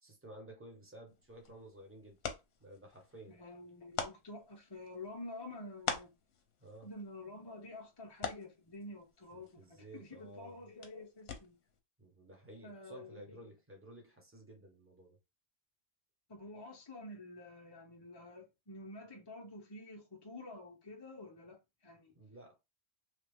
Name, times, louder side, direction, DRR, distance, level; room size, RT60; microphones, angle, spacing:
voice 1, 0.0-2.2 2.6-3.4 6.6-6.9 9.3-10.6 12.0-15.2 22.1-22.5, right 1 dB, 15° right, 0.9 m, -54 dB
sound 1, 1.1-11.8, left 6 dB, 70° left, 0.9 m, -46 dB
voice 2, 3.3-6.1 6.8-11.6 12.6-13.5 16.3-22.1, left 2 dB, 30° left, 0.6 m, -49 dB
3.2 x 2.3 x 3.4 m
omnidirectional pair, 1.1 m